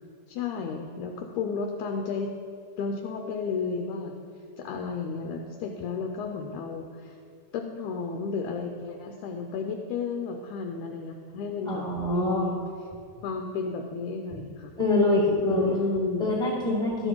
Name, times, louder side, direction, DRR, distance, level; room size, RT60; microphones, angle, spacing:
voice 1, 0.3-2.3 2.8-4.1 4.6-7.1 7.5-12.6 13.2-14.7 15.5-16.3, left 5 dB, 75° left, 3 dB, 2.0 m, -32 dB
voice 2, 11.7-12.6 14.8-15.7 16.2-17.1, left 2 dB, ahead, -7 dB, 1.4 m, -25 dB
12.5 x 6.5 x 4.6 m, 2.2 s
omnidirectional pair, 3.6 m